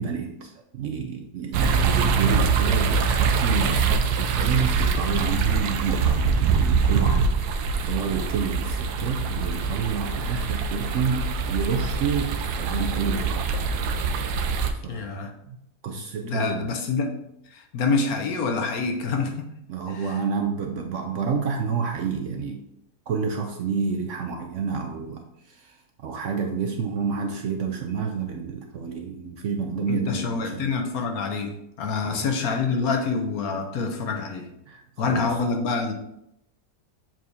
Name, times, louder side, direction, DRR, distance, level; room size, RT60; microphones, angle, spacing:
voice 1, 0.0-7.3 7.8-13.5 14.7-15.1 15.5-15.6 15.8-16.7 19.7-22.6 23.1-30.7 32.0-32.3 34.7-35.3, right 5 dB, 65° right, 4 dB, 0.8 m, -29 dB
sound 1, 1.5-14.7, right 5 dB, 85° right, 1.2 m, -24 dB
voice 2, 14.9-15.3 16.2-17.2 17.5-19.5 19.9-20.1 29.9-31.5 31.8-34.5 35.0-35.9, left 4 dB, 70° left, 4 dB, 1.3 m, -26 dB
7.4 x 4.7 x 2.7 m, 0.81 s
omnidirectional pair, 1.7 m